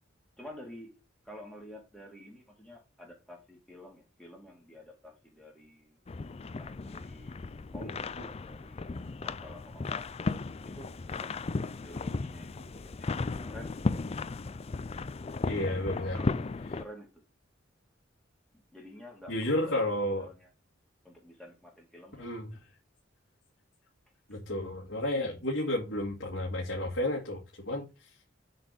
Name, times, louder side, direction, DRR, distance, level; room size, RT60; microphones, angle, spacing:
voice 1, 0.4-0.9 1.2-6.0 6.4-7.4 7.7-10.1 10.6-11.5 11.8-13.1 13.4-13.9 15.6-15.8 16.1-16.3 16.8-17.1 18.7-20.5 21.0-22.3, left 1 dB, 5° left, 2.3 m, -50 dB
sound 1, 6.1-16.8, left 3 dB, 30° left, 0.4 m, -35 dB
voice 2, 15.5-16.2 16.7-16.8 19.3-20.3 22.2-22.6 24.3-28.1, left 1 dB, 65° left, 2.3 m, -32 dB
7.7 x 4.2 x 6.7 m
head